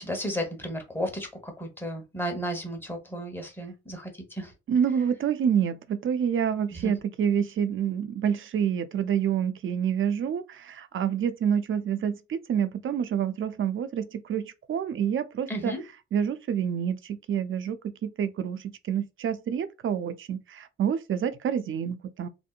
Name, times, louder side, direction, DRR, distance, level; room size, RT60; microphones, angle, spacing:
voice 1, 0.0-4.5 6.7-6.9 15.5-15.8, equal, 5° left, 1.1 m, -33 dB
voice 2, 4.7-15.8 16.1-22.3, right 8 dB, 45° right, 0.5 m, -28 dB
2.8 x 2.0 x 2.4 m
supercardioid pair, 55°, 29 cm